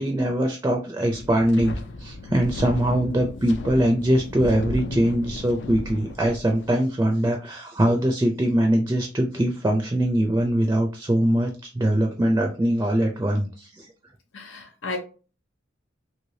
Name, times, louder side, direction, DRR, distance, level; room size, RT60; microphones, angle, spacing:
voice 1, 0.0-13.9, right 1 dB, 15° right, 0.4 m, -22 dB
Wind, 1.1-6.7, left 2 dB, 65° left, 0.4 m, -34 dB
voice 2, 14.3-15.0, left 3 dB, 90° left, 0.8 m, -33 dB
3.2 x 2.8 x 2.7 m
head